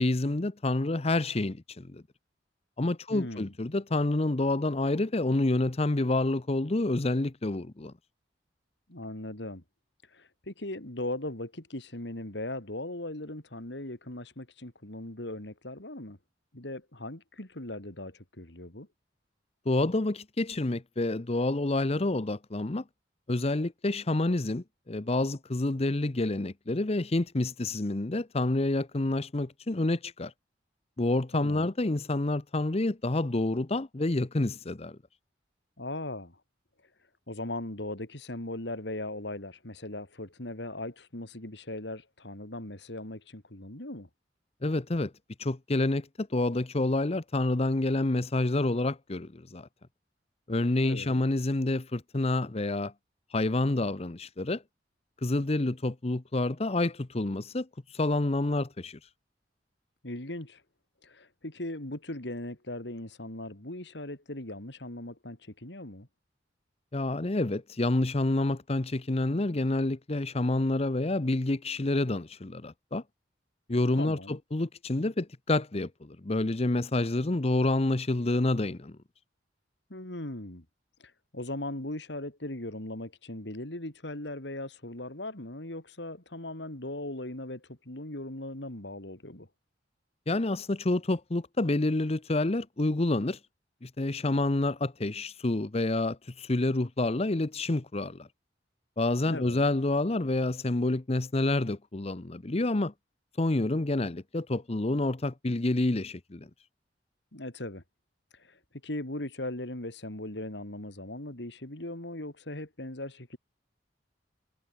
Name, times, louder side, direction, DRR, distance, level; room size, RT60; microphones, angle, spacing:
voice 1, 0.0-2.0 2.8-7.9 19.7-22.8 23.3-30.3 31.0-35.0 44.6-45.1 45.4-49.7 50.5-52.9 53.3-54.6 55.2-59.1 66.9-73.0 73.7-79.0 90.3-93.4 93.8-98.3 99.0-102.9 103.4-106.5, left 2 dB, 35° left, 0.8 m, -28 dB
voice 2, 3.1-3.5 8.9-9.6 10.1-16.2 16.5-18.9 31.3-31.7 35.8-36.4 37.3-44.1 50.8-51.2 60.0-60.6 61.0-66.1 74.0-74.4 79.9-80.6 81.0-89.5 99.3-99.6 107.3-107.8 108.3-113.4, left 1 dB, 70° left, 3.4 m, -39 dB
head